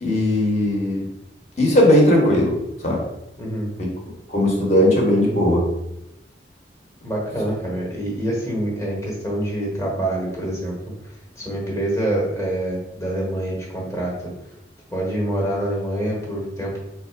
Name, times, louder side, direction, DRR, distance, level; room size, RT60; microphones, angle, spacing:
voice 1, 0.0-1.0 1.6-2.6 2.8-3.0 3.8-3.9 4.3-5.7, left 1 dB, 35° left, -2 dB, 1.1 m, -17 dB
voice 2, 3.4-3.7 7.0-10.7 11.4-14.1 14.9-16.7, right 1 dB, 15° left, -3 dB, 1.1 m, -26 dB
3.9 x 2.4 x 4.6 m, 0.85 s
head